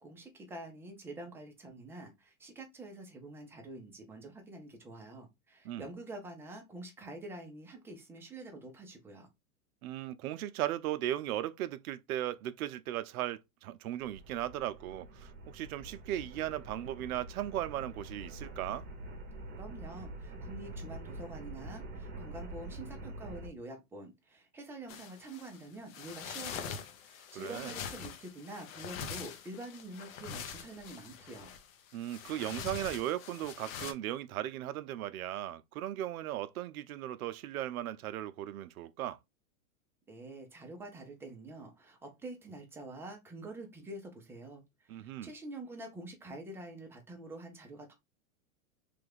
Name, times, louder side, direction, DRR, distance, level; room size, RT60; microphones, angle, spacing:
voice 1, 0.0-9.3 19.5-31.5 40.1-47.9, right 2 dB, 5° right, 0.4 m, -47 dB
voice 2, 9.8-18.9 27.4-27.7 31.9-39.2 44.9-45.3, right 13 dB, 80° right, 0.5 m, -37 dB
sound 1, 14.0-23.5, right 2 dB, 25° right, 0.8 m, -46 dB
sound 2, 24.9-33.9, left 7 dB, 70° left, 0.7 m, -44 dB
3.3 x 2.3 x 3.2 m
hypercardioid pair, 130°, 43 cm